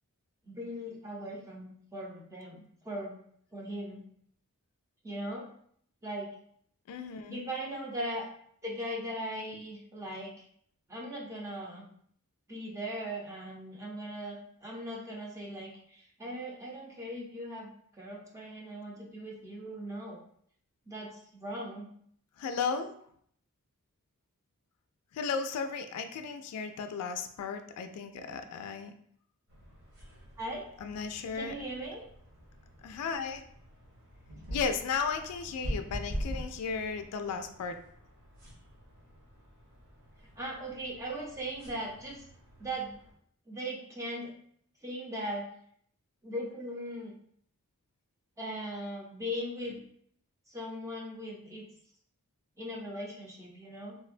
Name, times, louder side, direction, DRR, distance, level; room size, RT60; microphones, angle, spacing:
voice 1, 0.4-3.2 3.5-4.0 5.0-5.5 6.0-6.3 7.3-8.3 8.6-10.3 10.9-11.9 12.5-20.2 20.9-21.9 30.4-30.7 31.3-32.1 40.4-42.2 42.6-43.0 43.5-44.3 44.8-45.5 46.2-47.1 48.4-49.8 50.5-51.7 52.6-54.0, equal, 15° right, -3 dB, 0.6 m, -39 dB
voice 2, 6.9-7.4 22.4-22.9 25.1-28.9 30.8-31.5 32.8-33.4 34.5-37.8, left 5 dB, 85° left, 8 dB, 0.3 m, -35 dB
sound 1, 29.5-43.1, equal, 60° right, 1.2 m, -44 dB
3.4 x 2.1 x 2.4 m, 0.65 s
head